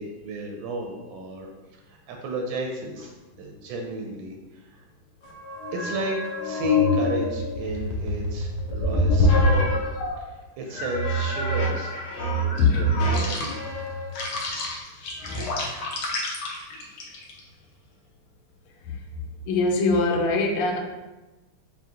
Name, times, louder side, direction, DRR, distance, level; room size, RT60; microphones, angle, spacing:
voice 1, 0.0-1.5 1.9-4.8 5.7-9.8 10.2-13.5, right 2 dB, 75° right, 1 dB, 1.1 m, -34 dB
sound 1, 5.2-10.2 10.7-17.4, left 1 dB, 65° left, 1.1 m, -26 dB
voice 2, 19.5-20.8, left 3 dB, 85° left, 2 dB, 1.5 m, -22 dB
5.9 x 2.2 x 2.8 m, 1.1 s
omnidirectional pair, 2.4 m